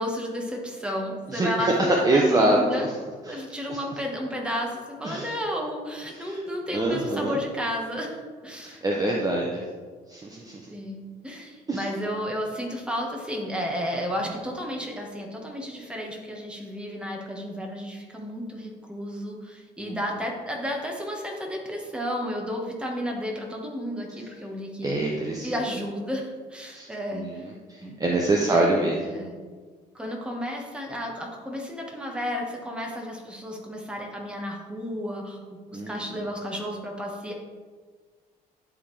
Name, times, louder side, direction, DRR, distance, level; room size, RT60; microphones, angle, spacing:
voice 1, 0.0-2.9 3.3-8.8 10.7-25.0 25.4-27.4 27.8-28.0 28.4-28.7 29.0-29.3 29.9-35.4 35.7-37.3, equal, 5° right, -1 dB, 1.3 m, -32 dB
voice 2, 1.3-1.7 2.0-2.9 3.3-3.4 3.7-3.8 5.0-5.3 6.2-6.4 6.7-7.4 8.6-9.6 10.1-10.6 11.7-11.8 19.8-19.9 24.8-25.5 26.7-26.9 27.1-29.0 35.7-35.9, right 2 dB, 20° right, -1 dB, 0.8 m, -25 dB
11.0 x 3.7 x 3.3 m, 1.5 s
cardioid pair, 110°, 17 cm